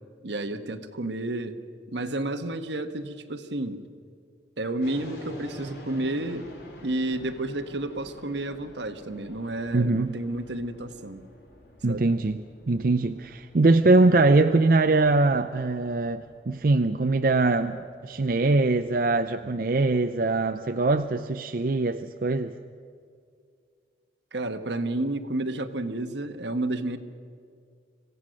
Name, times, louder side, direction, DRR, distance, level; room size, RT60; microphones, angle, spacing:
voice 1, 0.2-1.6 1.9-3.8 4.6-6.5 6.8-11.2 11.9-12.1 24.3-27.0, right 2 dB, 75° right, 9 dB, 1.2 m, -31 dB
sound 1, 4.8-21.1, equal, 70° left, 3.8 m, -49 dB
voice 2, 9.7-10.2 11.8-17.8 18.0-22.6, right 2 dB, 50° right, 7 dB, 0.5 m, -22 dB
26.0 x 16.5 x 6.4 m, 2.2 s
head